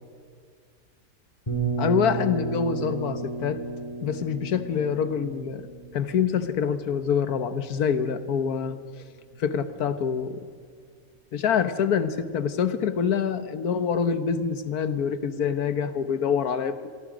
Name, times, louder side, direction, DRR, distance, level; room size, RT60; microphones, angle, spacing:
sound 1, 1.5-7.2, right 4 dB, 25° left, 3.9 m, -33 dB
voice 1, 1.8-3.6 4.0-5.7 5.9-8.8 9.4-10.4 11.3-16.9, left 7 dB, 80° left, 11 dB, 1.6 m, -26 dB
26.5 x 24.0 x 5.1 m, 2.1 s
omnidirectional pair, 1.6 m